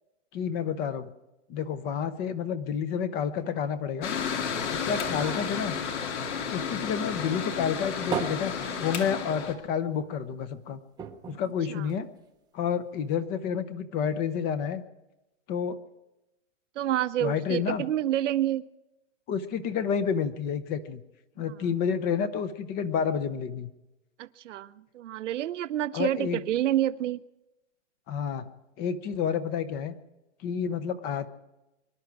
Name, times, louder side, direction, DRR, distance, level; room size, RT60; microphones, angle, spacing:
voice 1, 0.3-1.1 1.5-4.1 4.7-5.8 6.5-8.5 8.8-10.8 11.3-12.1 12.5-14.8 15.5-15.8 17.2-17.8 19.3-21.0 21.4-23.7 25.9-26.4 28.1-28.5 28.8-29.9 30.4-31.3, left 7 dB, 25° left, 0.8 m, -29 dB
Mechanical fan, 4.0-9.5, left 6 dB, 65° left, 2.4 m, -32 dB
sound 1, 4.4-7.0 7.4-9.6 10.0-10.1 10.4-10.5 10.9-12.5 13.1-13.2, right 7 dB, 10° right, 0.7 m, -39 dB
voice 2, 16.8-18.6 21.5-21.6 24.2-27.2, right 12 dB, 70° right, 0.8 m, -28 dB
24.5 x 11.5 x 4.7 m
hypercardioid pair, 150°, 37 cm